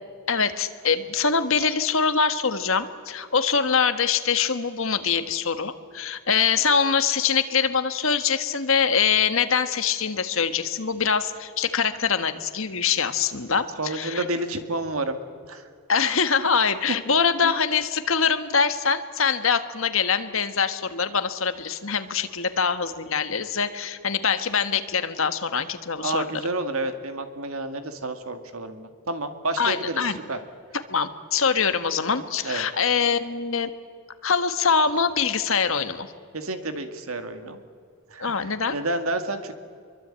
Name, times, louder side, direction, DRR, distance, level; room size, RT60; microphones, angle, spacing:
voice 1, 0.3-14.3 15.9-26.4 29.6-30.2 30.9-33.7 34.2-36.1 38.2-38.8, left 6 dB, 65° left, 10 dB, 1.5 m, -24 dB
voice 2, 13.8-15.2 15.5-15.6 17.4-17.5 26.0-30.0 30.3-30.4 32.4-32.7 36.3-37.6 38.1-39.5, right 2 dB, 75° right, 8 dB, 2.2 m, -30 dB
26.0 x 23.5 x 9.0 m, 2.3 s
head